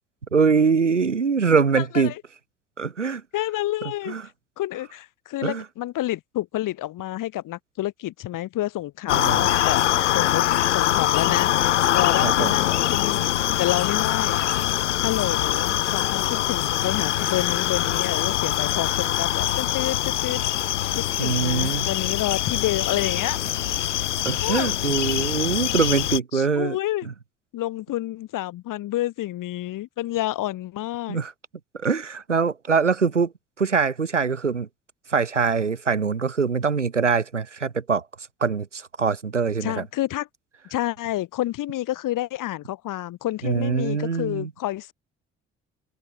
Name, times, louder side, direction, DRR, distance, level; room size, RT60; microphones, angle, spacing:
voice 1, 0.3-2.1 2.8-3.2 4.1-4.2 5.4-5.6 9.1-9.5 12.2-12.5 21.2-21.9 24.2-26.8 31.1-31.3 31.7-33.3 33.6-34.7 35.1-38.0 38.4-39.8 43.4-44.5, right 5 dB, 90° right, 2.7 m, -23 dB
voice 2, 1.8-2.2 3.3-4.1 4.6-9.9 10.1-10.4 10.7-11.5 11.9-14.6 15.0-20.4 20.9-23.4 24.4-24.7 26.3-27.1 27.5-31.2 39.6-40.3 40.7-44.9, left 15 dB, 60° left, 5.5 m, -29 dB
sound 1, 9.1-26.2, left 12 dB, 85° left, 0.7 m, -23 dB
figure-of-eight pair, 40°, 35 cm